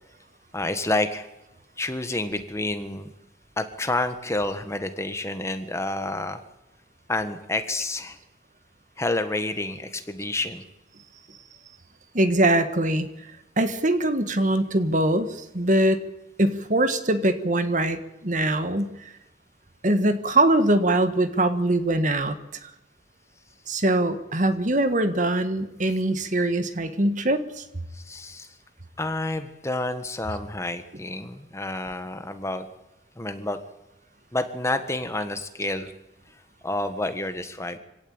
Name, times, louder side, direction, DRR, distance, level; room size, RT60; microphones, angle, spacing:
voice 1, 0.5-1.3 1.8-3.1 3.6-6.4 7.1-8.2 9.0-10.6 23.8-23.9 27.9-28.5 29.0-32.7 33.1-33.6 34.3-35.9 36.6-37.8, left 2 dB, 15° left, 9 dB, 1.5 m, -29 dB
voice 2, 12.1-13.1 13.6-16.0 16.4-19.1 19.8-22.3 22.6-22.7 23.7-27.6, right 1 dB, 45° right, 10 dB, 1.7 m, -22 dB
25.5 x 17.0 x 8.9 m, 0.96 s
head